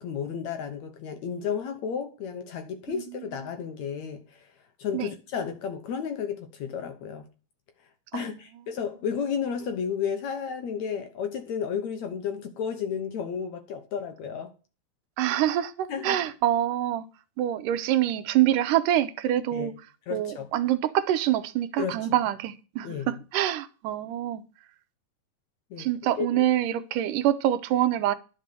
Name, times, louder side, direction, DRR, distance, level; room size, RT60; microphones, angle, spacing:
voice 1, 0.0-4.4 4.8-7.3 8.1-14.5 15.9-16.2 19.5-19.7 20.1-20.5 21.8-22.1 22.8-23.1 25.7-25.9 26.2-26.4, left 7 dB, 65° left, 2.0 m, -32 dB
voice 2, 15.2-17.0 17.4-19.7 20.1-24.4 25.8-28.2, right 12 dB, 80° right, 2.2 m, -25 dB
11.5 x 5.5 x 6.8 m
omnidirectional pair, 4.0 m